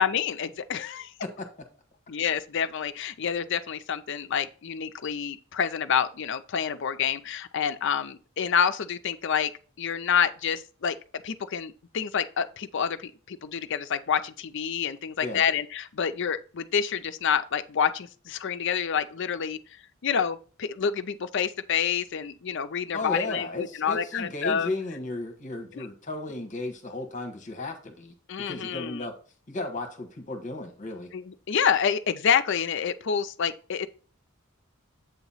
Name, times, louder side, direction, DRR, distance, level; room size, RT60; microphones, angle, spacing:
voice 1, 0.0-1.1 2.1-9.5 9.8-19.6 20.0-24.7 25.7-25.9 28.3-29.1 31.1-33.9, left 7 dB, 55° left, 0.5 m, -28 dB
voice 2, 22.9-28.1 28.5-29.1 29.5-31.1, left 2 dB, 35° left, 1.2 m, -34 dB
8.0 x 3.0 x 5.5 m
head